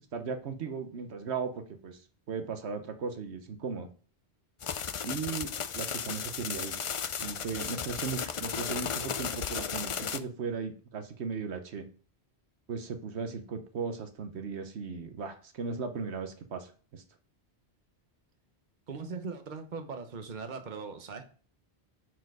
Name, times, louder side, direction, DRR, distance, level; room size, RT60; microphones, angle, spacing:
voice 1, 0.1-2.0 2.3-3.9 5.0-6.8 7.2-11.9 12.7-17.0, right 5 dB, 80° right, 7 dB, 1.2 m, -37 dB
sound 1, 4.6-10.2, left 7 dB, 55° left, 0.3 m, -35 dB
voice 2, 18.9-21.2, right 4 dB, 45° right, 7 dB, 1.1 m, -39 dB
8.7 x 4.6 x 4.8 m, 0.41 s
omnidirectional pair, 1.1 m